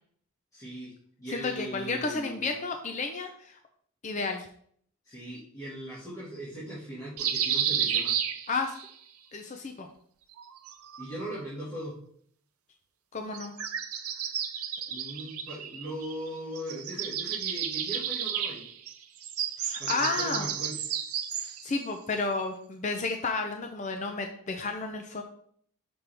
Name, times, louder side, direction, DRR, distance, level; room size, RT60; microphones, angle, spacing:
voice 1, 0.5-0.9 1.2-2.5 5.0-8.1 11.0-12.0 14.9-18.6 19.8-20.8, right 1 dB, 15° left, -12 dB, 2.0 m, -39 dB
voice 2, 1.3-3.6 4.0-4.5 8.5-8.7 9.3-9.9 13.1-13.5 19.6-20.5 21.3-25.2, left 3 dB, 35° left, 5 dB, 0.5 m, -32 dB
sound 1, 7.2-8.9 10.3-11.4 13.3-16.3 16.6-21.7, right 9 dB, 85° right, 0.6 m, -32 dB
6.0 x 5.3 x 3.4 m, 0.62 s
head